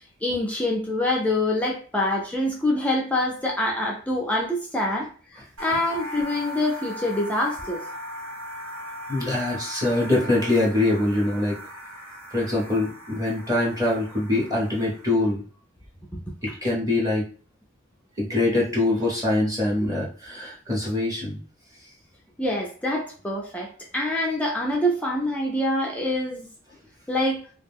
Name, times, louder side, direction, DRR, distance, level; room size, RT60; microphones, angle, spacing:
voice 1, 0.2-7.8 16.1-16.2 16.5-16.6 22.4-26.5 27.1-27.4, left 1 dB, 5° left, -2 dB, 0.4 m, -25 dB
sound 1, 5.6-15.3, equal, 85° right, 1.2 m, -38 dB
voice 2, 9.1-11.6 12.3-15.4 16.4-17.3 18.2-21.4, left 2 dB, 15° right, -4 dB, 0.8 m, -24 dB
2.3 x 2.1 x 3.4 m, 0.41 s
head